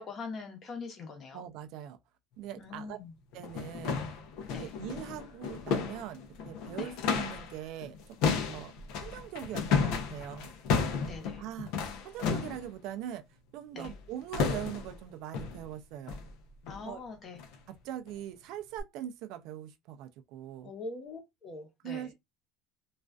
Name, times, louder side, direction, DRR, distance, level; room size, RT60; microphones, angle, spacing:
voice 1, 0.0-1.4 2.6-3.1 4.5-4.7 6.8-6.9 11.1-11.4 13.7-13.9 16.7-17.4 20.6-22.1, left 4 dB, 40° left, 0.9 m, -43 dB
voice 2, 1.3-2.0 2.4-3.0 3.3-4.0 4.6-6.2 6.5-8.7 9.0-10.5 11.4-11.7 12.0-13.2 13.5-16.2 16.8-17.0 17.7-20.7 21.8-22.1, right 11 dB, 65° right, 0.4 m, -41 dB
sound 1, 2.7-2.8 3.3-7.6 7.8-12.7 13.8-14.1 14.3-15.0 15.3-15.6 16.1-16.3 16.6-16.9 17.3-17.6 18.1-18.2 18.8-18.9, left 5 dB, 70° left, 0.5 m, -33 dB
2.4 x 2.3 x 2.2 m
supercardioid pair, 115°, 0 cm